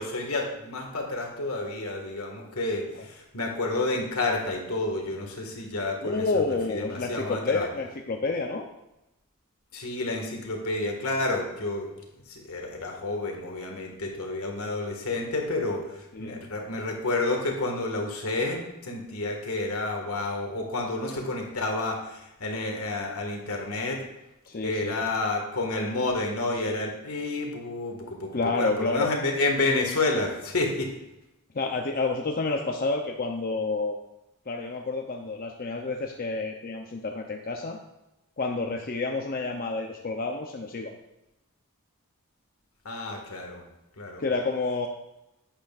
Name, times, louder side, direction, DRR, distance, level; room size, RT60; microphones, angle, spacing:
voice 1, 0.0-6.3 6.7-7.7 9.7-11.9 12.3-24.0 24.6-30.9 42.9-43.6 44.0-44.2, left 2 dB, 75° left, 2 dB, 1.9 m, -30 dB
voice 2, 6.0-8.6 16.1-16.4 24.5-25.0 28.3-29.1 31.5-34.0 34.5-37.8 38.4-40.9 44.2-44.9, left 3 dB, 40° left, 2 dB, 0.6 m, -29 dB
11.5 x 8.9 x 2.5 m, 0.92 s
head